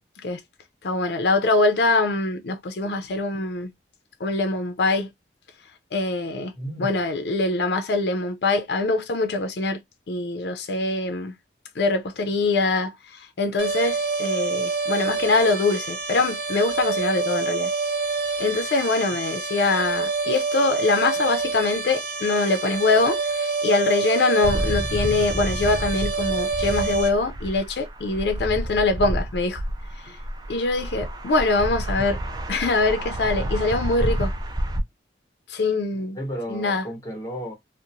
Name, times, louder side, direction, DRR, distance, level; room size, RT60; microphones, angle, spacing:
voice 1, 0.8-3.7 4.2-5.1 5.9-6.5 6.8-9.8 10.1-11.3 11.8-17.7 18.4-29.6 30.1-30.2 30.5-32.2 32.5-34.3 35.5-36.2 36.5-36.8, left 3 dB, 65° left, 0.5 m, -23 dB
voice 2, 6.5-7.0 36.1-37.5, equal, 20° left, 1.0 m, -33 dB
sound 1, 13.6-27.1, right 4 dB, 75° right, 0.9 m, -27 dB
sound 2, 24.4-34.8, right 1 dB, 25° right, 0.3 m, -29 dB
2.6 x 2.1 x 2.7 m
head